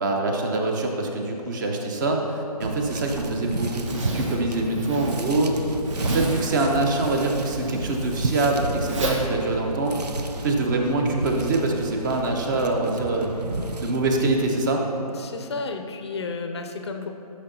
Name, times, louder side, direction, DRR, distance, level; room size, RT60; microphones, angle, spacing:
voice 1, 0.0-5.6 6.0-10.0 10.4-13.3 13.8-14.8, right 2 dB, 30° right, 2 dB, 0.8 m, -24 dB
sound 1, 2.6-14.0, right 2 dB, 85° right, 0.6 m, -32 dB
Zipper (clothing), 3.0-10.5, right 1 dB, 50° right, 1.2 m, -33 dB
voice 2, 15.1-17.1, left 4 dB, 45° left, 6 dB, 0.6 m, -32 dB
13.0 x 6.3 x 2.8 m, 2.9 s
figure-of-eight pair, 140°, 20 cm